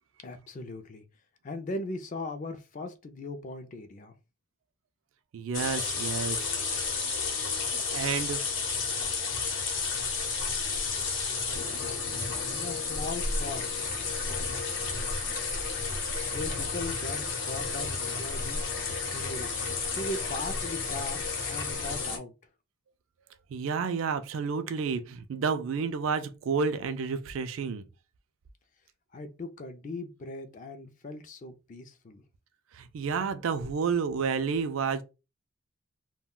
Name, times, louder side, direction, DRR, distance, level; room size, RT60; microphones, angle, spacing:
voice 1, 0.2-1.0 1.4-4.1 12.5-13.9 16.3-18.6 19.0-19.5 19.9-22.3 29.1-32.2, left 2 dB, 35° left, 0.3 m, -39 dB
voice 2, 5.3-6.5 7.7-8.4 23.5-27.8 32.7-35.0, right 5 dB, 70° right, 0.3 m, -30 dB
sound 1, 5.5-22.2, left 4 dB, 55° left, 0.7 m, -32 dB
2.3 x 2.1 x 3.6 m
head